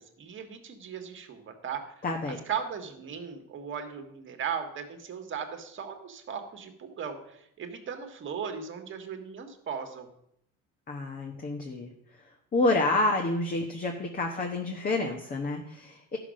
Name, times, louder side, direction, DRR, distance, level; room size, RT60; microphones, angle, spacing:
voice 1, 0.2-1.8 2.5-10.1, right 7 dB, 40° right, 6 dB, 1.5 m, -37 dB
voice 2, 2.0-2.4 10.9-11.9 12.5-16.2, left 2 dB, 30° left, 2 dB, 1.1 m, -28 dB
13.0 x 6.0 x 6.3 m, 0.75 s
cardioid pair, 140°, 31 cm